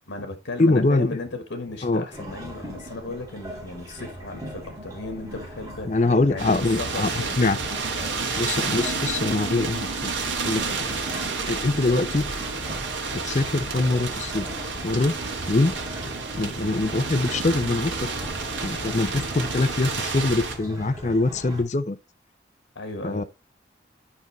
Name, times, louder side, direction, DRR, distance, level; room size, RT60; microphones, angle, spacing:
voice 1, 0.1-5.9 6.3-7.4 22.7-23.2, left 2 dB, 90° left, 1.4 m, -35 dB
voice 2, 0.6-1.2 1.8-2.0 5.8-7.1 7.4-7.6 8.4-10.1 10.5-10.8 11.5-12.3 13.2-14.5 14.8-15.1 15.5-15.7 16.4-17.9 18.6-22.0 23.0-23.2, left 2 dB, 40° left, 0.5 m, -23 dB
sound 1, 2.1-21.6, equal, 20° right, 3.7 m, -40 dB
sound 2, 6.4-20.6, right 4 dB, 90° right, 1.8 m, -30 dB
9.8 x 5.3 x 3.1 m
head